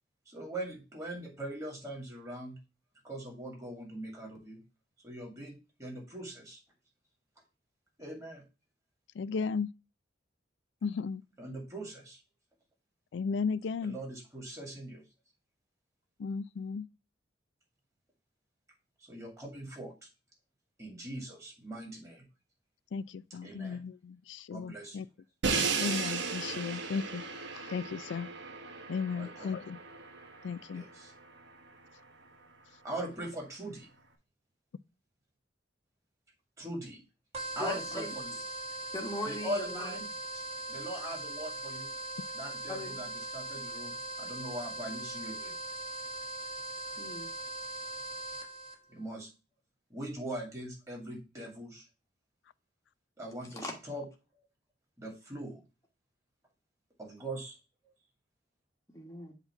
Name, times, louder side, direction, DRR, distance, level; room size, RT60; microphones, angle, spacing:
voice 1, 0.3-2.6 3.0-4.6 5.0-6.6 8.0-8.4 11.4-12.2 13.8-15.0 19.0-20.1 20.8-22.3 23.4-23.8 24.5-25.0 26.5-26.9 29.2-29.5 30.7-31.1 32.8-33.9 36.6-37.0 37.6-38.3 39.2-40.0 40.7-41.9 42.3-45.5 48.9-49.3 49.9-51.8 53.2-54.1 55.0-55.6 57.0-57.5, right 1 dB, 15° right, 2.2 m, -41 dB
voice 2, 9.1-9.7 10.8-11.2 13.1-14.0 16.2-16.9 22.9-25.1 25.8-27.2 27.5-28.3 28.9-29.8 30.4-30.8, left 5 dB, 70° left, 0.3 m, -35 dB
Crash cymbal, 25.4-31.4, right 5 dB, 70° right, 1.2 m, -36 dB
sound 1, 37.3-48.7, right 2 dB, 30° right, 1.2 m, -40 dB
voice 3, 37.6-38.1 38.9-40.0 42.7-43.0 47.0-47.3 53.5-53.7 58.9-59.3, left 1 dB, 15° left, 1.2 m, -39 dB
7.9 x 2.9 x 5.6 m
head